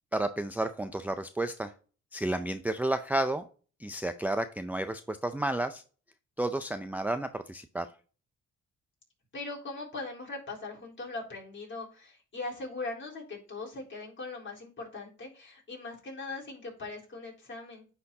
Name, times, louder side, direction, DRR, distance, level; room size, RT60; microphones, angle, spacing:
voice 1, 0.1-1.7 2.1-3.5 3.8-5.8 6.4-7.9, right 1 dB, 5° right, 8 dB, 0.4 m, -31 dB
voice 2, 9.3-17.9, left 3 dB, 40° left, -3 dB, 3.9 m, -40 dB
9.4 x 4.3 x 2.8 m, 0.38 s
cardioid pair, 90°, 30 cm